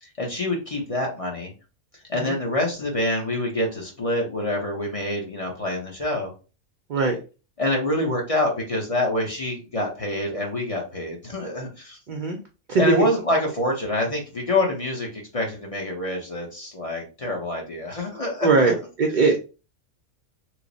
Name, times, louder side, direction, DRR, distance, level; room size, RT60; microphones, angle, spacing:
voice 1, 0.0-1.5 2.1-6.3 7.6-12.0 12.8-18.7, left 1 dB, 35° left, -1 dB, 0.7 m, -26 dB
voice 2, 12.1-12.4 12.7-13.1 18.4-19.4, right 3 dB, 55° right, 3 dB, 0.5 m, -20 dB
3.1 x 2.0 x 3.8 m, 0.33 s
omnidirectional pair, 1.3 m